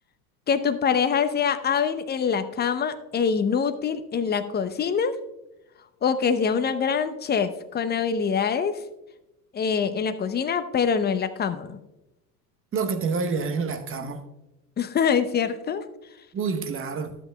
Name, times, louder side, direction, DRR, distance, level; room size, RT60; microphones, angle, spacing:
voice 1, 0.5-5.1 6.0-8.8 9.5-11.8 14.8-15.8, left 6 dB, 20° left, 0.7 m, -24 dB
voice 2, 12.7-14.2 16.3-17.2, right 5 dB, 25° right, 1.0 m, -28 dB
12.5 x 8.1 x 2.3 m
hypercardioid pair, 80°, 47 cm